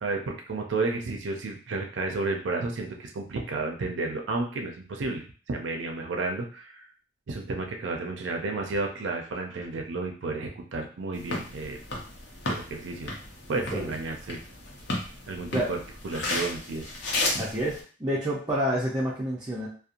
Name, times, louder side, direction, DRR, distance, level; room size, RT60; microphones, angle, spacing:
voice 1, 0.0-6.9 7.3-11.8 12.4-13.1 13.5-14.4 14.9-16.9, right 3 dB, 85° right, 2 dB, 0.5 m, -32 dB
sound 1, 11.1-17.8, left 2 dB, 70° left, 0.7 m, -34 dB
voice 2, 13.6-13.9 15.5-15.7 17.4-19.7, equal, 20° right, -7 dB, 0.5 m, -28 dB
2.8 x 2.1 x 2.5 m, 0.39 s
head